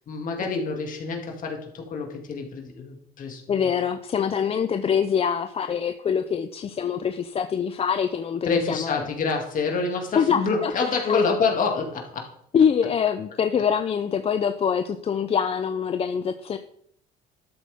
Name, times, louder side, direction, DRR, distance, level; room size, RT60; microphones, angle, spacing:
voice 1, 0.0-3.7 8.4-12.3, left 4 dB, 50° left, 1 dB, 2.4 m, -27 dB
voice 2, 3.5-9.0 10.1-11.2 12.5-16.6, left 7 dB, 35° left, 9 dB, 0.5 m, -24 dB
12.0 x 8.3 x 3.6 m, 0.70 s
cardioid pair, 110°, 17 cm